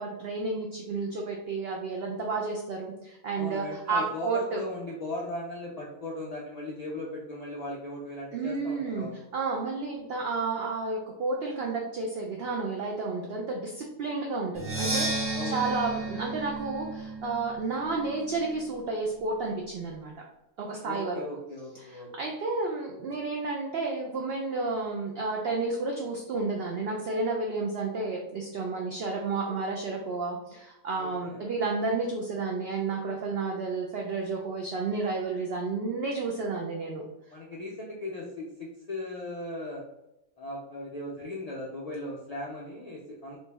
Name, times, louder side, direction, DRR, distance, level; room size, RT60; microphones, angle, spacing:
voice 1, 0.0-4.6 8.3-20.1 20.6-21.2 21.7-37.0, right 3 dB, 65° right, 0 dB, 0.6 m, -31 dB
voice 2, 3.4-9.2 15.3-15.6 20.8-22.1 31.0-31.4 37.3-39.8 40.4-43.4, left 2 dB, 75° left, -4 dB, 0.3 m, -38 dB
Percussion, 14.5-18.3, right 2 dB, 20° right, 0.3 m, -33 dB
3.1 x 2.6 x 3.3 m, 0.88 s
omnidirectional pair, 1.5 m